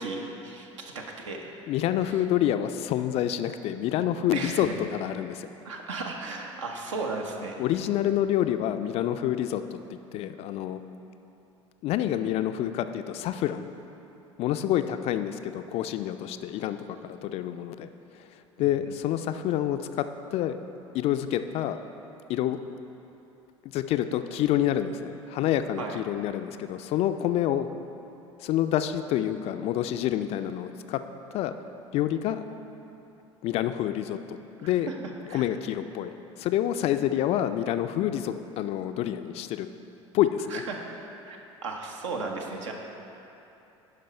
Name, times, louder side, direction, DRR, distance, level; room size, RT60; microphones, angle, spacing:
voice 1, 0.0-1.5 4.3-4.7 5.6-7.5 18.9-19.0 25.8-26.0 34.9-35.0 35.3-35.5 40.5-40.8 41.2-42.7, right 3 dB, 70° right, 1 dB, 1.0 m, -35 dB
voice 2, 1.7-5.5 7.6-9.8 10.1-10.8 11.8-13.7 14.4-17.9 18.2-20.6 20.9-21.8 22.3-22.6 23.6-27.7 28.4-31.0 31.3-31.5 31.9-32.4 33.4-34.9 35.3-39.7 40.1-40.6, left 11 dB, 40° left, 10 dB, 0.4 m, -28 dB
11.0 x 5.2 x 4.3 m, 2.9 s
figure-of-eight pair, 70°, 16 cm